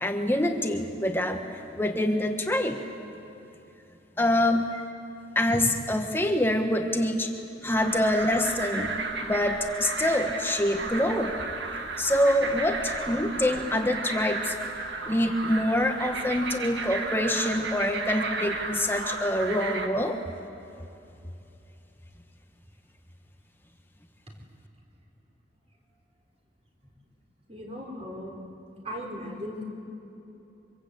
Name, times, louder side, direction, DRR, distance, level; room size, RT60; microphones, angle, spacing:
voice 1, 0.0-1.4 1.7-2.8 4.2-4.7 5.3-7.3 7.6-9.0 9.2-11.4 12.0-14.5 15.0-20.2, left 1 dB, 10° left, 4 dB, 1.5 m, -25 dB
sound 1, 7.7-19.9, right 3 dB, 70° right, 2.0 m, -34 dB
voice 2, 27.5-28.3 28.8-29.6, equal, 35° right, 0 dB, 4.5 m, -37 dB
25.0 x 24.5 x 8.4 m, 3.0 s
head